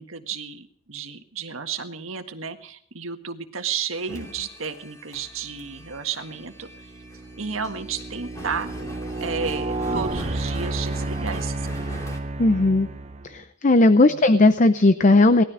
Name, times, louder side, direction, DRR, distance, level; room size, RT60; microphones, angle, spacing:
voice 1, 0.0-6.7 7.4-8.7 9.2-12.0 14.1-14.2, right 6 dB, 85° right, 6 dB, 1.6 m, -32 dB
sound 1, 3.9-12.2, left 1 dB, 15° left, 3.0 m, -43 dB
sound 2, 5.7-6.0 6.6-13.4, right 2 dB, 35° right, 0.7 m, -31 dB
voice 2, 12.4-12.9 13.2-15.4, left 2 dB, 40° left, 11 dB, 0.6 m, -17 dB
18.5 x 13.5 x 5.0 m, 0.63 s
head